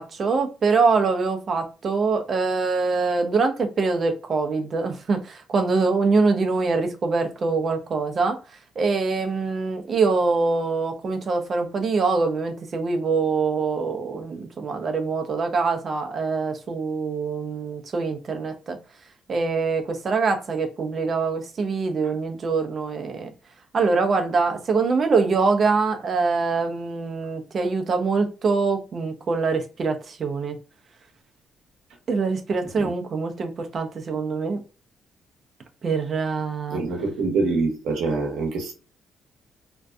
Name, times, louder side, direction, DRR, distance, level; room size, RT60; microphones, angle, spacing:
voice 1, 0.0-8.4 8.8-18.8 19.3-23.3 23.7-30.6 32.1-34.6 35.8-36.8, right 4 dB, 50° right, 0.5 m, -24 dB
voice 2, 36.7-38.7, right 3 dB, 85° right, 0.8 m, -25 dB
2.6 x 2.3 x 2.2 m
cardioid pair, 90°, 0 cm